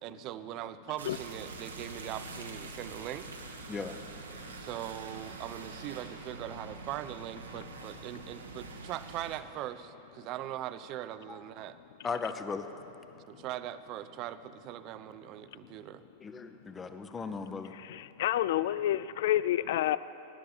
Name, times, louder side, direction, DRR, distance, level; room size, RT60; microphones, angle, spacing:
voice 1, 0.0-3.3 4.6-11.8 13.3-16.0, right 13 dB, 40° right, 13 dB, 0.5 m, -41 dB
sound 1, 1.0-9.4, right 3 dB, 70° right, 1.2 m, -45 dB
voice 2, 12.0-12.7 16.2-17.7, left 5 dB, 20° left, 9 dB, 0.8 m, -37 dB
voice 3, 17.7-20.0, left 13 dB, 55° left, 17 dB, 0.3 m, -29 dB
20.5 x 11.0 x 4.1 m, 2.8 s
figure-of-eight pair, 90°, 0 cm